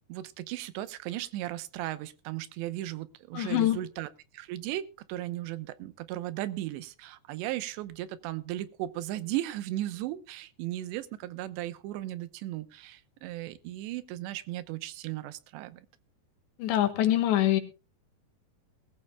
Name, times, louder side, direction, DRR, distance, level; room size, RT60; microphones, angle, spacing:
voice 1, 0.1-4.1 4.3-15.8, right 14 dB, 85° right, 3.1 m, -36 dB
voice 2, 3.3-3.8 16.6-17.6, left 13 dB, 85° left, 3.7 m, -24 dB
20.5 x 14.5 x 2.2 m
omnidirectional pair, 4.9 m